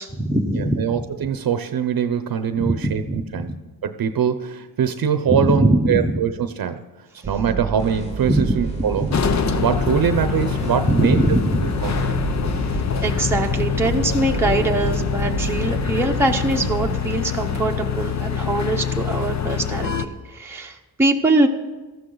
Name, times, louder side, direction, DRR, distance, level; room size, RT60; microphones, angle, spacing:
voice 1, 0.0-0.9 2.6-3.4 5.3-6.2 8.3-8.5 9.0-9.1 10.9-11.6 13.0-21.5, right 1 dB, 5° right, 1 dB, 1.0 m, -22 dB
voice 2, 0.5-3.5 3.8-6.8 7.3-9.1 9.6-11.4 11.8-12.2, right 8 dB, 60° right, 9 dB, 0.8 m, -23 dB
sound 1, 7.2-17.0, right 5 dB, 20° right, 0.6 m, -30 dB
sound 2, 7.7-13.1, equal, 15° left, 2.7 m, -38 dB
sound 3, 9.1-20.1, left 7 dB, 45° left, 0.8 m, -25 dB
18.0 x 14.0 x 4.0 m, 1.3 s
wide cardioid pair, 110°, 39 cm